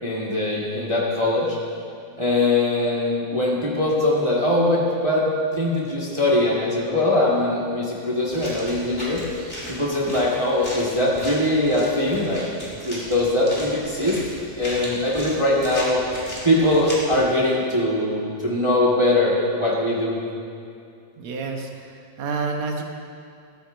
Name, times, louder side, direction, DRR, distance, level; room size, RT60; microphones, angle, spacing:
voice 1, 0.0-1.5 2.2-5.3 5.6-9.2 9.7-12.5 12.8-14.2 14.6-16.0 16.4-20.2, left 1 dB, 35° right, -5 dB, 0.4 m, -21 dB
sound 1, 8.2-17.2, equal, 10° left, 2.2 m, -37 dB
voice 2, 14.6-15.0 21.2-22.8, right 4 dB, 70° right, 2 dB, 2.2 m, -30 dB
13.5 x 13.0 x 2.6 m, 2.5 s
omnidirectional pair, 3.3 m